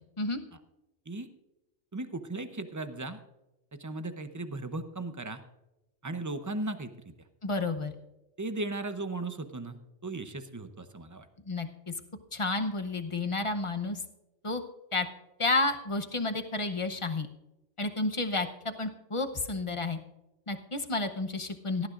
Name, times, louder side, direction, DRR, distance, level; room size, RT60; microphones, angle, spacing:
voice 1, 1.9-3.2 3.7-5.4 6.0-7.1 8.4-11.3, right 2 dB, 20° right, 10 dB, 0.5 m, -37 dB
voice 2, 7.4-7.9 11.5-11.7 12.3-14.0 14.4-14.6 14.9-15.1 15.4-17.3 17.8-20.0 20.5-21.9, left 2 dB, 30° left, 7 dB, 0.7 m, -31 dB
18.0 x 13.0 x 2.5 m, 0.97 s
omnidirectional pair, 1.2 m